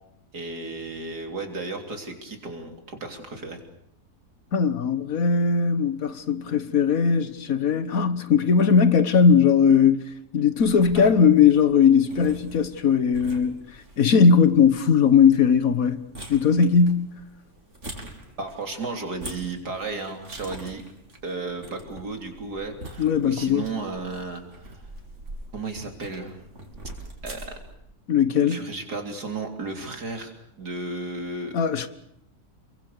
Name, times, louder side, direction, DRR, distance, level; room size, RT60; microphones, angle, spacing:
voice 1, 0.3-3.6 10.9-11.1 18.4-20.8 21.2-24.8 25.5-26.4 27.2-27.5 28.5-31.5, right 3 dB, 80° right, 4.0 m, -34 dB
voice 2, 4.5-10.0 10.3-13.6 14.0-17.1 23.0-23.6 28.1-28.6 31.5-31.9, left 6 dB, 60° left, 1.7 m, -19 dB
sound 1, 10.6-27.8, right 1 dB, 45° right, 4.5 m, -44 dB
28.5 x 23.5 x 6.8 m
omnidirectional pair, 1.7 m